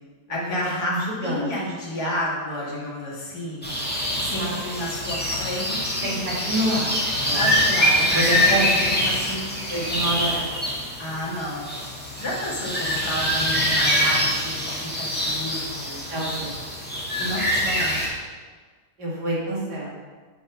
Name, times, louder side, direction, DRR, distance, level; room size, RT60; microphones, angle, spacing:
voice 1, 0.3-3.7 4.2-6.2 7.3-9.6 11.0-11.7 12.2-14.5 14.8-16.0 17.2-18.0, left 1 dB, 70° left, -5 dB, 2.5 m, -31 dB
voice 2, 0.8-1.5 4.2-4.6 6.0-7.5 8.1-8.7 9.7-10.6 16.1-16.5 19.0-20.0, right 1 dB, 80° right, -6 dB, 2.7 m, -27 dB
sound 1, 3.6-18.1, equal, 5° left, 1.4 m, -24 dB
8.5 x 4.0 x 5.7 m, 1.5 s
omnidirectional pair, 1.8 m